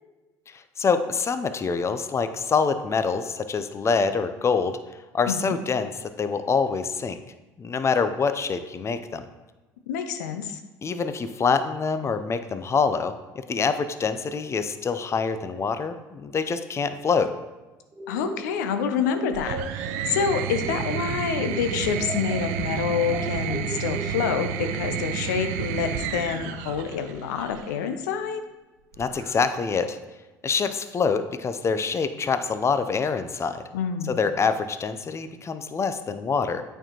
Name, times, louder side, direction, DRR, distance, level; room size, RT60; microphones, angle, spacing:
voice 1, 0.5-4.8 5.1-7.2 7.6-9.3 10.8-17.3 29.0-30.0 30.4-33.6 34.1-36.6, left 5 dB, 30° left, 10 dB, 0.5 m, -25 dB
voice 2, 9.9-10.6 18.1-28.4 33.7-34.2, left 7 dB, 80° left, 8 dB, 0.6 m, -27 dB
sound 1, 17.9-21.2 21.5-24.5, right 2 dB, 30° right, 1.0 m, -38 dB
sound 2, 19.3-27.7 28.9-29.6, right 9 dB, 75° right, 0.4 m, -31 dB
8.7 x 4.5 x 2.9 m, 1.1 s
hypercardioid pair, 65°, 9 cm